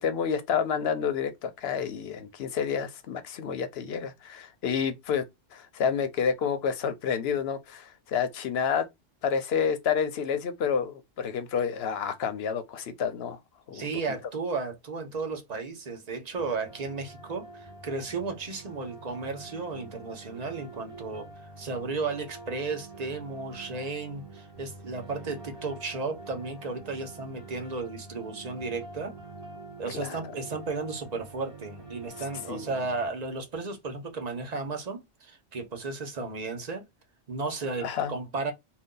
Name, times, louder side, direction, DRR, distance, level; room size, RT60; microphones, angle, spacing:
voice 1, 0.0-5.2 5.5-8.8 9.2-13.4 13.7-13.8 29.9-30.3 32.5-32.7 37.8-38.1, left 7 dB, 70° left, 0.8 m, -29 dB
voice 2, 13.7-29.1 29.8-36.8 37.3-38.5, right 3 dB, 40° right, 0.8 m, -34 dB
sound 1, 16.4-33.1, right 2 dB, 60° right, 1.5 m, -46 dB
2.6 x 2.3 x 3.6 m
omnidirectional pair, 1.1 m